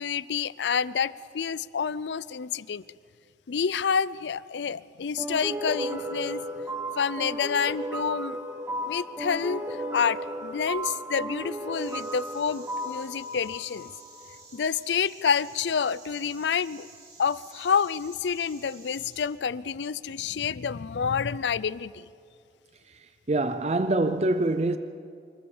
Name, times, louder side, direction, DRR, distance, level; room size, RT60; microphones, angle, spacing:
voice 1, 0.0-2.8 3.5-6.4 7.0-8.4 8.8-13.9 14.5-16.9 17.2-22.0, left 6 dB, 90° left, 0.5 m, -28 dB
sound 1, 5.2-14.4, right 1 dB, 10° right, 0.8 m, -34 dB
Insect, 11.7-19.2, right 3 dB, 70° right, 6.0 m, -51 dB
voice 2, 22.9-24.8, right 2 dB, 35° right, 0.5 m, -25 dB
25.5 x 14.0 x 7.2 m
head